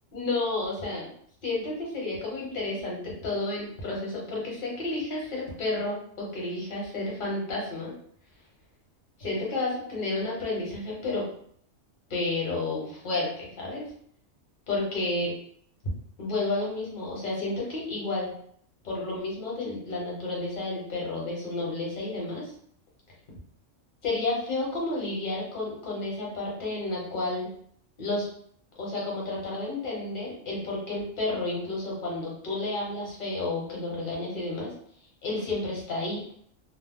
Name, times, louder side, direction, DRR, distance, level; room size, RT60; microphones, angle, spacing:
voice 1, 0.1-1.1 1.4-7.9 9.2-11.2 12.1-13.8 14.7-15.3 16.2-18.3 18.8-22.5 24.0-27.5 28.0-28.3 28.8-34.7 35.2-36.2, left 2 dB, 45° left, -3 dB, 1.0 m, -31 dB
2.4 x 2.1 x 3.5 m, 0.64 s
omnidirectional pair, 1.3 m